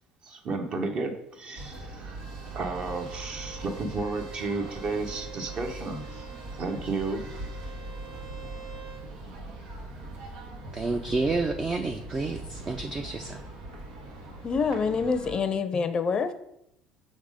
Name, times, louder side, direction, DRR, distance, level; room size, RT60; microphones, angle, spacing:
voice 1, 0.2-2.2 2.5-6.3 6.5-7.2, right 3 dB, 45° right, 5 dB, 1.0 m, -33 dB
sound 1, 1.6-15.4, right 2 dB, 90° right, 1.5 m, -41 dB
Bowed string instrument, 2.1-9.1, right 8 dB, 70° right, 1.9 m, -47 dB
voice 2, 10.7-13.4, right 3 dB, 25° right, 6 dB, 0.4 m, -29 dB
voice 3, 14.4-16.3, left 5 dB, 35° left, 11 dB, 0.5 m, -26 dB
6.4 x 3.5 x 5.0 m, 0.78 s
supercardioid pair, 110°, 2 cm